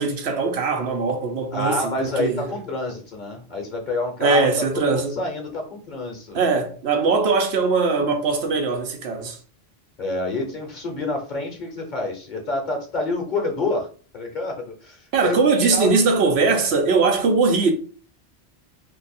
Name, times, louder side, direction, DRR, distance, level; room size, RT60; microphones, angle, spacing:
voice 1, 0.0-2.5 4.2-5.2 6.3-9.4 15.1-17.7, right 4 dB, 80° right, 1.0 m, -21 dB
voice 2, 1.5-6.4 10.0-13.9 14.1-16.0, left 2 dB, 45° left, 1.1 m, -28 dB
2.8 x 2.4 x 4.1 m
omnidirectional pair, 1.1 m